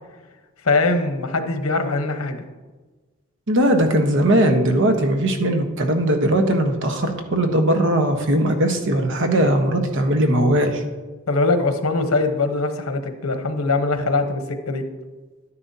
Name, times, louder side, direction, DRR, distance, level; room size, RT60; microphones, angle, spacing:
voice 1, 0.6-2.4 11.3-14.8, left 3 dB, 80° left, 7 dB, 1.0 m, -22 dB
voice 2, 3.5-10.8, right 1 dB, 60° right, 5 dB, 1.1 m, -19 dB
11.5 x 9.7 x 2.8 m, 1.2 s
head